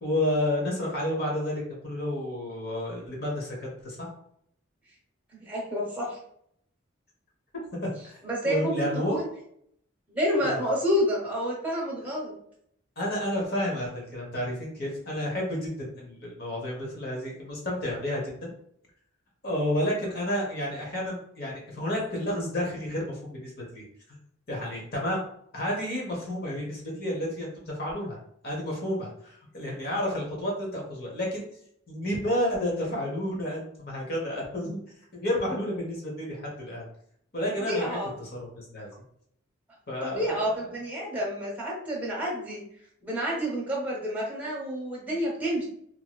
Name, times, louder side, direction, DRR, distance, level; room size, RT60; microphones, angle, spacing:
voice 1, 0.0-4.1 7.7-7.8 8.0-8.2 8.4-9.2 10.4-10.6 13.0-18.5 19.4-23.8 24.5-25.2 25.5-28.2 28.4-31.4 31.9-34.8 35.1-36.8 37.3-38.0 38.5-38.9 39.9-40.6, left 1 dB, 45° left, -2 dB, 1.0 m, -30 dB
voice 2, 5.3-6.2 8.2-9.2 10.1-12.3 37.6-38.1 40.0-42.6 43.0-45.6, equal, 5° right, -5 dB, 0.9 m, -29 dB
3.0 x 2.8 x 2.3 m, 0.68 s
head